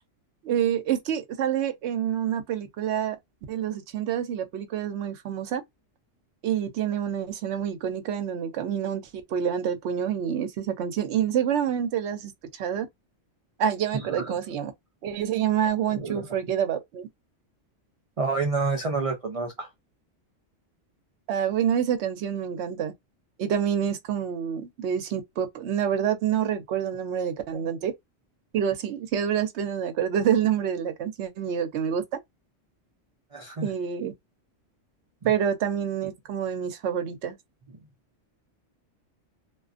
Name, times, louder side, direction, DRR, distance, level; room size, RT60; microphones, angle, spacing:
voice 1, 0.4-3.2 3.5-5.6 6.4-9.0 9.3-12.9 13.6-14.7 15.0-17.1 21.3-22.9 23.4-27.9 28.5-32.0 33.6-34.1 35.2-37.4, right 9 dB, 70° right, 0.8 m, -27 dB
voice 2, 13.9-14.4 15.9-16.3 18.2-19.7 27.5-27.7 33.3-33.7, right 3 dB, 55° right, 0.4 m, -29 dB
2.4 x 2.4 x 2.4 m
omnidirectional pair, 1.3 m